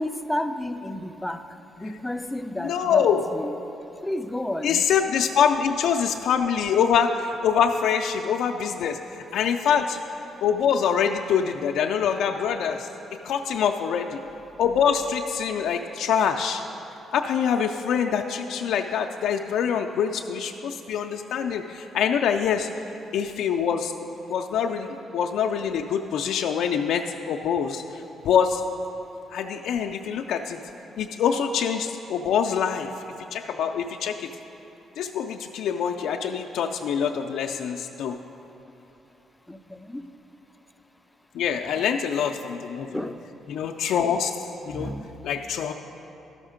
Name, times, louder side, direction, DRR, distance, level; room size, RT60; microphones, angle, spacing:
voice 1, 0.0-1.4 1.8-3.6 4.0-4.8 39.5-40.1 42.9-43.2 44.7-45.1, left 1 dB, 5° left, 9 dB, 0.4 m, -31 dB
voice 2, 2.6-3.2 4.6-9.0 9.3-10.0 10.4-12.9 13.2-14.2 14.6-16.6 17.1-22.7 23.1-23.9 24.3-24.9 25.1-28.6 29.3-30.6 31.0-32.9 33.3-34.3 35.0-38.2 41.3-42.9 43.5-44.4 44.6-44.9 45.2-45.7, left 7 dB, 80° left, 3 dB, 0.3 m, -24 dB
12.0 x 6.3 x 5.0 m, 3.0 s
cardioid pair, 90°, 0 cm